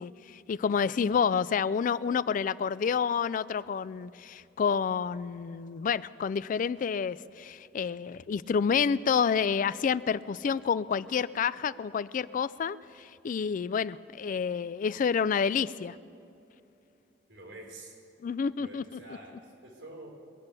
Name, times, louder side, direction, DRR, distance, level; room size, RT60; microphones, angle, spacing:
voice 1, 0.0-16.0 18.2-19.0, left 6 dB, 45° left, 18 dB, 0.3 m, -29 dB
voice 2, 17.3-18.0 18.6-20.1, right 2 dB, 85° right, -1 dB, 4.1 m, -47 dB
22.0 x 8.3 x 6.7 m, 2.6 s
head